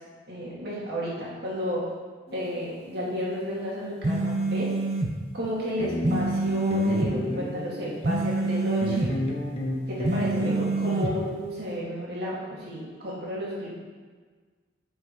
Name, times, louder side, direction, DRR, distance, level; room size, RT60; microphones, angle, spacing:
voice 1, 0.3-1.8 2.3-4.7 5.3-9.1 9.9-13.7, equal, 60° right, -6 dB, 2.5 m, -32 dB
sound 1, 2.3-2.6 5.5-5.6 5.8-8.1 8.8-11.8, left 1 dB, 35° left, 1.3 m, -32 dB
sound 2, 4.0-5.1 6.0-7.1 8.0-9.1 10.0-11.1, right 2 dB, 40° right, 0.7 m, -26 dB
10.5 x 5.4 x 4.7 m, 1.5 s
head